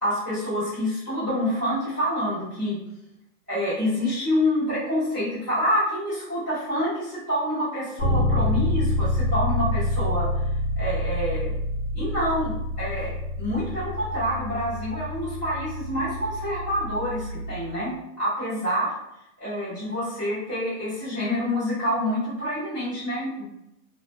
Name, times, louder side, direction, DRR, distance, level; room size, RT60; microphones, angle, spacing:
voice 1, 0.0-2.8 3.5-10.3 10.8-11.5 11.9-12.5 12.8-13.1 13.4-18.9 19.4-23.5, equal, 15° right, -17 dB, 0.5 m, -27 dB
Bass guitar, 8.0-17.8, left 1 dB, 25° left, 0.6 m, -27 dB
2.4 x 2.1 x 2.5 m, 0.84 s
hypercardioid pair, 175°, 47 cm